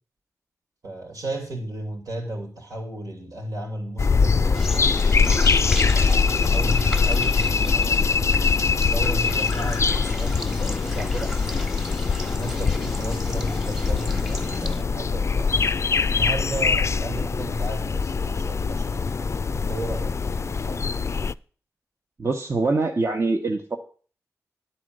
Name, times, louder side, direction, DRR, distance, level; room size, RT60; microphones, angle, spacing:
voice 1, 0.8-5.2 5.9-8.1 8.6-11.4 12.3-15.6 16.1-21.0, right 1 dB, 85° right, 2.8 m, -34 dB
sound 1, 4.0-21.3, left 5 dB, 50° left, 0.3 m, -23 dB
sound 2, 4.5-14.8, equal, 5° right, 1.2 m, -35 dB
voice 2, 22.2-23.8, right 3 dB, 50° right, 1.1 m, -24 dB
10.0 x 4.3 x 7.7 m
cardioid pair, 50°, 6 cm